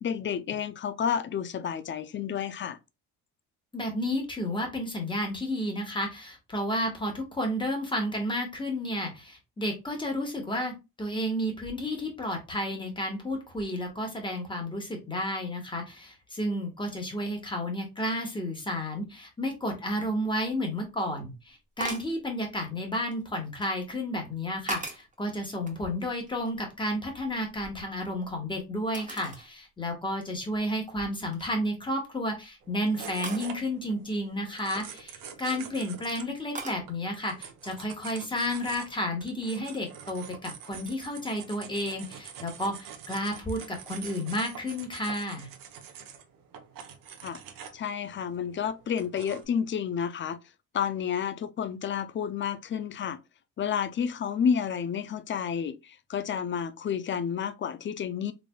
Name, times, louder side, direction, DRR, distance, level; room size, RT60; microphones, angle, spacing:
voice 1, 0.0-2.8 47.2-47.4 47.7-50.4 50.7-53.2 53.6-58.3, left 7 dB, 35° left, 0.4 m, -30 dB
voice 2, 3.7-45.5, equal, 15° left, 1.4 m, -32 dB
sound 1, 21.8-22.2 22.9-23.7 24.3-25.2 25.6-26.7 27.0-28.3 28.9-29.5 30.0-30.1 30.7-30.9 31.3-31.7 33.2-33.5 35.2-35.7 36.5-36.8, right 3 dB, 25° right, 1.0 m, -40 dB
sound 2, 32.6-49.4, right 7 dB, 75° right, 0.8 m, -46 dB
3.8 x 3.4 x 2.2 m
cardioid pair, 110°, 33 cm